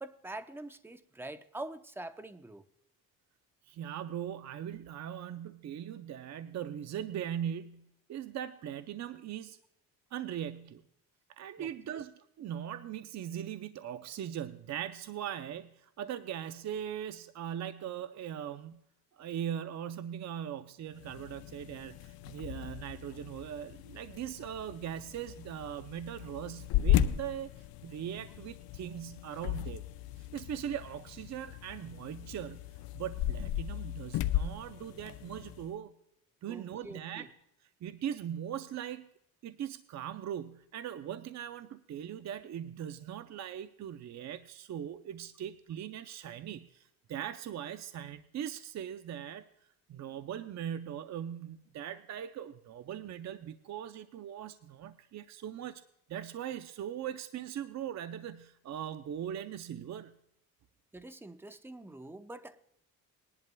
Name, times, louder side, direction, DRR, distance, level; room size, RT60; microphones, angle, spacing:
voice 1, 0.0-2.6 11.6-12.0 36.5-37.3 60.9-62.7, right 2 dB, 5° right, 9 dB, 0.7 m, -45 dB
voice 2, 3.7-9.6 10.1-10.8 11.4-18.8 19.1-29.8 30.2-32.6 32.9-35.9 36.4-37.3 37.8-39.1 39.4-49.5 49.9-55.8 56.1-60.2, right 10 dB, 50° right, 10 dB, 0.6 m, -40 dB
sound 1, 20.9-35.7, left 11 dB, 80° left, 0.6 m, -36 dB
20.0 x 11.0 x 2.2 m, 0.76 s
cardioid pair, 105°, 35 cm